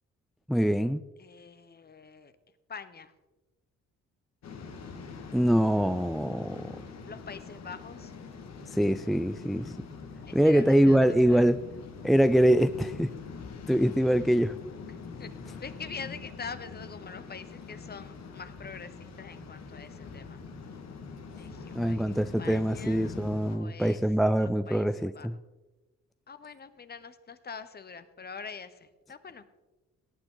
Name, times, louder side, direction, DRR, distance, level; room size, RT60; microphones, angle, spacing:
voice 1, 0.5-1.0 5.3-6.7 8.7-9.7 10.3-11.6 12.0-13.1 13.7-14.6 21.7-25.3, equal, ahead, 12 dB, 0.3 m, -24 dB
voice 2, 1.2-2.3 2.7-3.1 7.1-8.1 10.3-11.5 14.9-15.3 15.6-20.4 21.4-23.1 23.5-24.0 24.4-25.3 26.3-29.5, left 5 dB, 35° left, 12 dB, 1.0 m, -44 dB
Waves surf, 4.4-23.6, left 4 dB, 60° left, 1.8 m, -44 dB
18.0 x 9.0 x 3.9 m, 1.1 s
cardioid pair, 90°, 30 cm